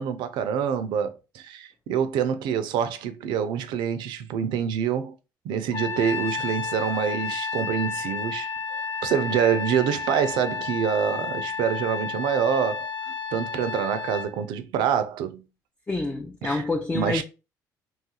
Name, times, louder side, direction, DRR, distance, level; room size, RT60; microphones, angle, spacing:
voice 1, 0.0-5.1 5.4-8.5 9.0-12.9 13.3-15.4 16.4-16.6 16.9-17.2, right 8 dB, 85° right, 0.5 m, -26 dB
Trumpet, 5.7-14.3, left 5 dB, 50° left, 0.6 m, -31 dB
voice 2, 15.9-17.2, left 3 dB, 15° left, 0.3 m, -27 dB
3.0 x 2.3 x 2.8 m
cardioid pair, 110°, 8 cm